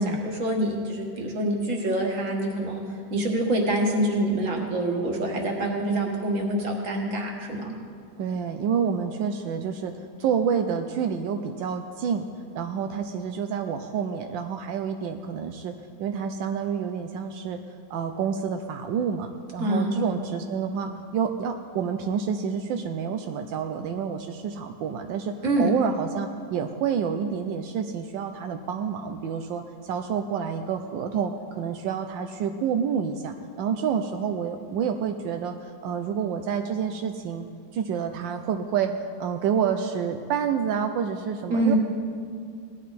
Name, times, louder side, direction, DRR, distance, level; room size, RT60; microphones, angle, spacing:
voice 1, 0.0-7.7 19.6-20.0 25.4-25.7 41.5-41.8, right 1 dB, 45° right, 0 dB, 2.0 m, -26 dB
voice 2, 8.2-12.3 12.5-17.6 17.9-37.5 37.7-41.8, right 7 dB, 85° right, 6 dB, 1.4 m, -28 dB
18.5 x 11.5 x 4.2 m, 2.2 s
omnidirectional pair, 2.0 m